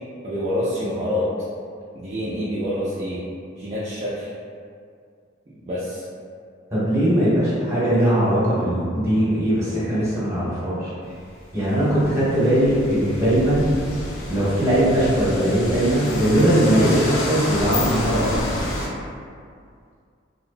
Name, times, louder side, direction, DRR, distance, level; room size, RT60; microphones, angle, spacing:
voice 1, 0.2-1.3 1.9-3.2 3.6-4.3 5.6-6.0, left 1 dB, 35° right, -9 dB, 0.3 m, -26 dB
voice 2, 6.7-10.9 11.5-13.7 14.3-18.6, right 1 dB, 15° right, -11 dB, 1.0 m, -20 dB
sound 1, 11.2-18.9, left 1 dB, 85° left, 0.5 m, -29 dB
2.6 x 2.1 x 2.5 m, 2.2 s
head